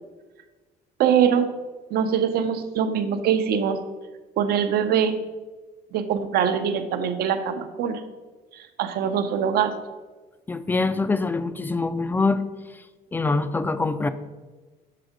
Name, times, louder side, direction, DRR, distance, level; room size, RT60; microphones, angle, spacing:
voice 1, 1.0-1.5 1.9-3.8 4.4-5.2 5.9-8.0 8.5-9.7, right 8 dB, 70° right, 9 dB, 0.6 m, -23 dB
voice 2, 10.5-12.4 13.1-14.1, left 3 dB, 10° left, 12 dB, 0.3 m, -24 dB
6.7 x 3.5 x 5.0 m, 1.3 s
cardioid pair, 110°, 17 cm